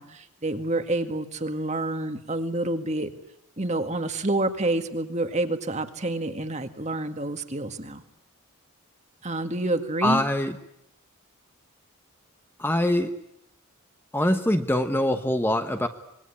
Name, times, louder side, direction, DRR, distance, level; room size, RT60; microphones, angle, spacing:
voice 1, 0.0-3.1 3.6-8.0 9.2-10.2, right 2 dB, 30° right, 7 dB, 1.9 m, -28 dB
voice 2, 10.0-10.5 12.6-13.1 14.1-15.9, left 1 dB, 10° left, 7 dB, 1.2 m, -23 dB
26.0 x 21.5 x 9.8 m, 0.79 s
head